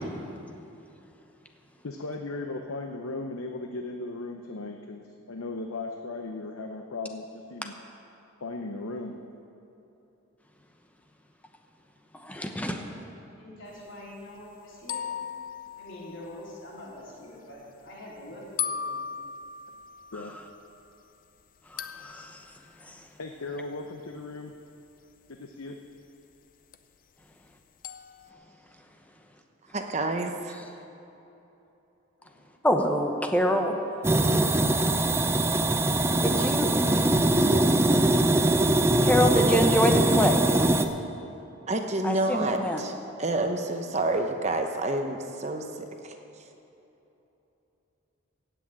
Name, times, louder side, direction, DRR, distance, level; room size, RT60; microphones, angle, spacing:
voice 1, 1.8-7.7 8.4-9.2 20.1-20.3 23.2-24.5 25.4-25.8 33.6-33.7 36.1-37.1 37.5-38.1, left 3 dB, 85° left, 4 dB, 0.8 m, -37 dB
voice 2, 12.2-12.9 20.1-20.2 21.7-22.5 22.8-23.0 32.6-33.8 36.2-36.9 39.0-40.4 42.0-42.8, equal, 5° left, 3 dB, 0.9 m, -26 dB
voice 3, 12.8-15.1 15.8-19.1, left 1 dB, 60° left, -5 dB, 3.8 m, -45 dB
sound 1, 14.9-16.8 18.6-20.9 21.8-22.6 26.7-26.8 27.8-28.3, left 7 dB, 40° left, 0.5 m, -37 dB
voice 4, 29.7-30.6 41.7-42.9 43.2-46.1, right 2 dB, 30° right, 4 dB, 0.8 m, -29 dB
sound 2, 34.0-40.9, right 1 dB, 10° right, 0.5 m, -22 dB
16.0 x 6.3 x 8.8 m, 3.0 s
head